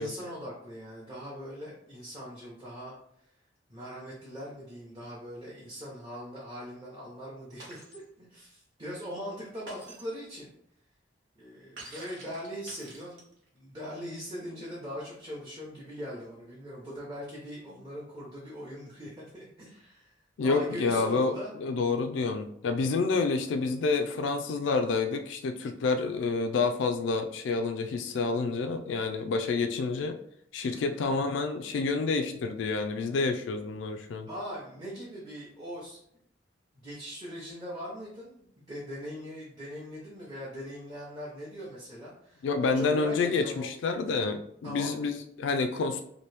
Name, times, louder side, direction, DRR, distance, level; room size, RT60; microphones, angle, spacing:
voice 1, 0.0-2.9 3.7-10.5 11.4-13.2 13.5-21.5 30.7-31.0 34.3-36.0 36.7-43.7 44.6-45.0, equal, 20° right, -6 dB, 0.7 m, -41 dB
Shatter, 7.6-8.0 9.7-10.2 11.8-13.5, right 1 dB, 70° right, 1.2 m, -47 dB
voice 2, 20.4-30.2 30.5-34.3 42.4-46.0, left 4 dB, 80° left, 6 dB, 0.3 m, -28 dB
3.0 x 2.6 x 3.2 m, 0.71 s
head